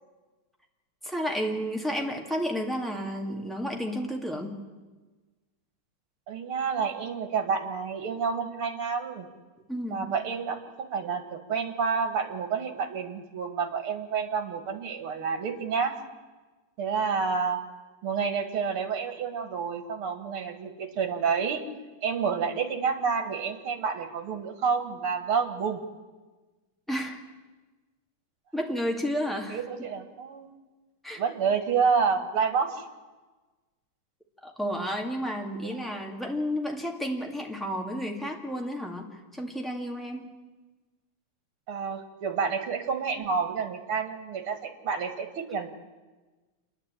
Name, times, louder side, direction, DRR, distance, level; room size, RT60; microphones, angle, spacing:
voice 1, 1.0-4.6 9.7-10.0 26.9-27.2 28.5-29.6 31.0-31.2 34.4-39.1 39.3-40.3, equal, ahead, 0 dB, 2.1 m, -31 dB
voice 2, 6.3-9.3 9.9-15.9 16.8-17.6 18.0-21.6 22.0-25.8 29.5-30.5 31.2-32.9 35.6-35.8 41.7-45.8, right 6 dB, 75° right, 7 dB, 2.6 m, -29 dB
27.5 x 11.0 x 9.0 m, 1.3 s
omnidirectional pair, 2.4 m